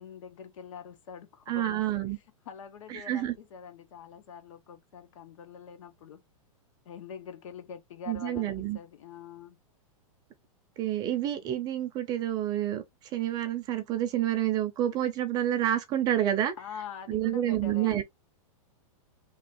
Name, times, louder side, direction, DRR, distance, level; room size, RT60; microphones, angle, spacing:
voice 1, 0.0-2.0 2.4-6.2 6.8-9.6 16.6-18.0, left 7 dB, 65° left, 1.0 m, -45 dB
voice 2, 1.5-2.2 2.9-3.3 8.1-8.8 10.8-12.8 13.1-16.5 17.1-18.0, right 12 dB, 20° right, 0.5 m, -28 dB
3.1 x 2.3 x 4.2 m
supercardioid pair, 155°, 18 cm